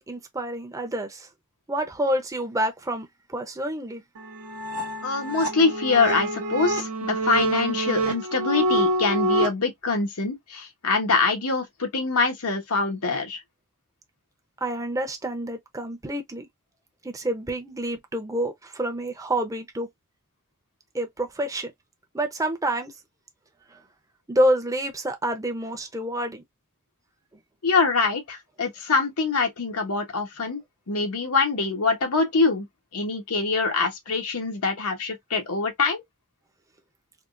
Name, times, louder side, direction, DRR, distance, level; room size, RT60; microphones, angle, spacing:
voice 1, 0.1-1.3 1.7-4.0 14.6-16.5 17.0-19.9 20.9-21.7 22.1-22.9 23.7-23.8 24.3-26.4, right 1 dB, 15° right, 0.7 m, -28 dB
sound 1, 4.2-9.5, right 1 dB, 75° right, 0.9 m, -26 dB
voice 2, 5.0-13.4 27.6-30.6 30.9-32.7 32.9-36.0, left 4 dB, 80° left, 1.1 m, -24 dB
3.5 x 2.4 x 2.5 m
head